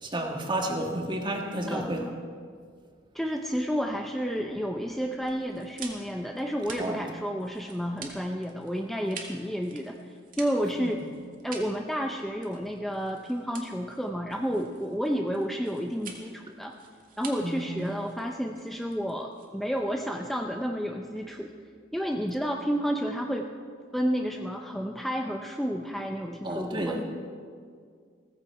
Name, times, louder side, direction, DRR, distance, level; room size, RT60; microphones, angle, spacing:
voice 1, 0.0-2.1 6.8-7.0 10.8-10.9 17.4-17.7 26.4-27.0, right 1 dB, 25° right, 2 dB, 1.6 m, -31 dB
voice 2, 1.7-2.1 3.1-11.0 11.4-16.7 17.2-21.5 21.9-23.5 23.9-27.0, equal, ahead, 2 dB, 0.6 m, -31 dB
sound 1, 5.2-19.9, right 5 dB, 50° right, 2.0 m, -47 dB
16.5 x 14.5 x 4.8 m, 2.1 s
head